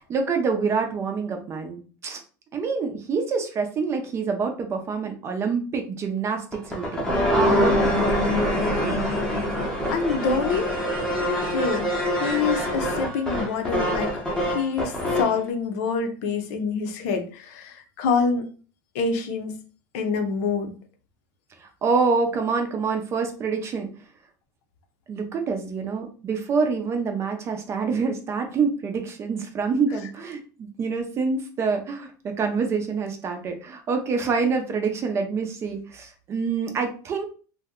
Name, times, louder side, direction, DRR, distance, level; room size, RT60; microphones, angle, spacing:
voice 1, 0.0-2.2 2.5-9.1 21.6-23.9 25.1-37.2, right 5 dB, 25° right, 0.6 m, -27 dB
sound 1, 6.5-15.4, equal, 5° left, 0.8 m, -24 dB
voice 2, 9.9-10.7 11.5-11.9 12.2-14.1 14.5-18.5 18.9-19.6 19.9-20.7, left 5 dB, 65° left, 0.6 m, -26 dB
2.6 x 2.2 x 3.6 m
supercardioid pair, 150°, 10 cm